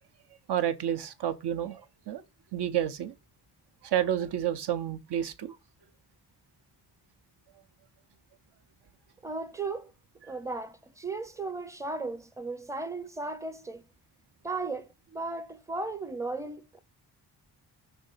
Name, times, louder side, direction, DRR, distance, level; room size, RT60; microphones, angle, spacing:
voice 1, 0.5-2.2 2.5-3.1 3.8-5.5, right 10 dB, 75° right, 1.0 m, -30 dB
voice 2, 9.2-9.9 10.2-13.8 14.4-16.8, right 3 dB, 10° right, 0.6 m, -36 dB
6.2 x 3.4 x 5.5 m
wide cardioid pair, 145°, 41 cm